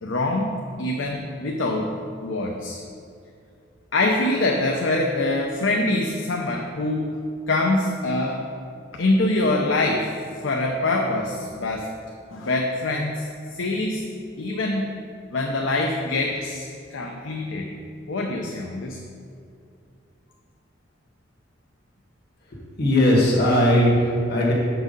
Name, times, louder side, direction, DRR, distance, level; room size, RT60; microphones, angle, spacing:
voice 1, 0.0-1.9 2.2-2.8 3.9-7.1 7.5-8.4 8.9-10.1 10.4-11.9 12.3-14.1 14.4-14.9 15.3-17.7 18.1-19.0, left 2 dB, 85° left, 2 dB, 0.7 m, -24 dB
voice 2, 22.5-24.5, left 1 dB, 60° left, -4 dB, 1.6 m, -19 dB
7.3 x 6.0 x 5.3 m, 2.4 s
head